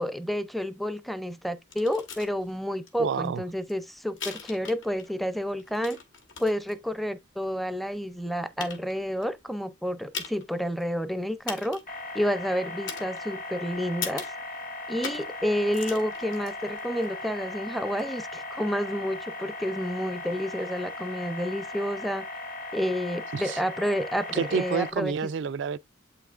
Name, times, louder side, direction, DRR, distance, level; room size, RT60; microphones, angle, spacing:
voice 1, 0.0-6.0 6.4-11.8 12.1-14.3 14.9-22.3 22.7-25.3, equal, ahead, 0.5 m, -30 dB
sound 1, 1.7-2.3 2.9-3.0 3.2-5.1 5.5-6.7 7.4-7.5 8.1-8.2 8.6-9.2 10.1-10.5 10.8-10.9 11.5-12.0 12.9-13.5 14.0-14.4 15.0-15.4 15.6-17.1 17.9-18.0, left 6 dB, 75° left, 1.7 m, -39 dB
voice 2, 3.0-3.4 23.3-23.6 24.3-25.8, right 6 dB, 65° right, 0.3 m, -29 dB
sound 2, 11.9-24.9, left 2 dB, 50° left, 0.9 m, -38 dB
8.0 x 5.8 x 2.4 m
head